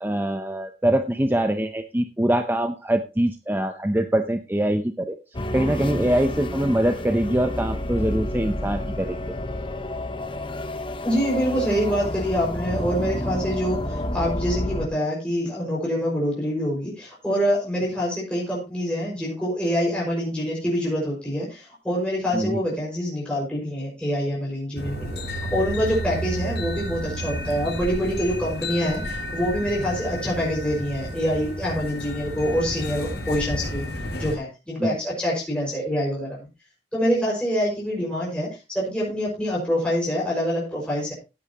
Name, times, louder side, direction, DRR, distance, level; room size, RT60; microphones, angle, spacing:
voice 1, 0.0-5.2 5.5-9.2 22.3-22.6 34.8-34.9, right 1 dB, 10° right, 7 dB, 0.7 m, -23 dB
sound 1, 5.3-14.9, left 1 dB, 30° left, 1.1 m, -30 dB
voice 2, 11.0-25.2 25.5-33.8 34.2-36.5 36.9-41.1, equal, 5° left, -5 dB, 5.6 m, -25 dB
sound 2, 24.8-34.4, equal, 65° left, 5.4 m, -31 dB
16.5 x 8.8 x 2.9 m, 0.28 s
head